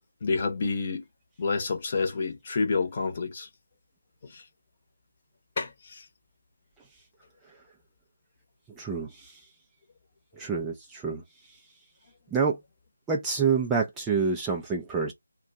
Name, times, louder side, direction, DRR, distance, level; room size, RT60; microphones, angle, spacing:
voice 1, 0.2-1.0 1.4-3.5 4.3-4.4 5.6-6.0, left 4 dB, 35° left, 0.8 m, -28 dB
voice 2, 8.8-9.5 10.3-11.6 12.3-12.6 13.1-15.1, right 5 dB, 10° right, 0.3 m, -28 dB
2.5 x 2.2 x 3.9 m
figure-of-eight pair, 160°, 0 cm